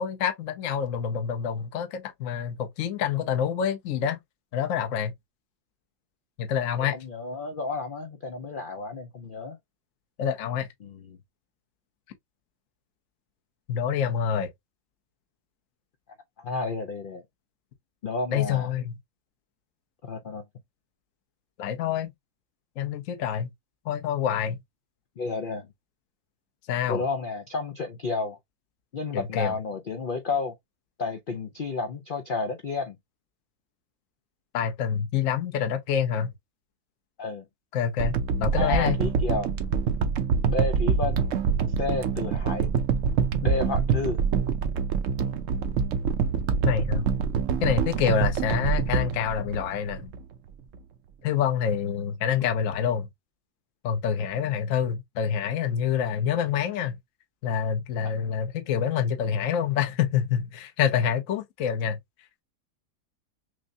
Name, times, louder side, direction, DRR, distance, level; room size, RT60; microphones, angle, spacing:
voice 1, 0.0-4.2 4.5-5.1 6.4-6.9 10.2-10.7 13.7-14.5 18.3-19.0 21.6-22.1 22.8-23.5 23.9-24.6 26.7-27.0 29.1-29.6 34.5-36.3 37.7-38.1 38.4-39.0 46.6-47.1 47.6-50.1 51.2-53.1 53.8-57.0 57.4-62.0, left 8 dB, 60° left, 1.0 m, -27 dB
voice 2, 6.9-9.6 10.8-11.2 16.4-17.2 18.0-18.7 20.0-20.4 25.2-25.7 26.9-28.4 28.9-30.5 31.0-33.0 37.2-37.4 38.5-39.5 40.5-41.2 41.8-42.7 43.4-44.2 58.0-58.1, left 4 dB, 90° left, 0.4 m, -31 dB
sound 1, 38.0-50.2 50.7-50.8, right 6 dB, 65° right, 0.8 m, -25 dB
6.1 x 2.1 x 2.6 m
omnidirectional pair, 1.7 m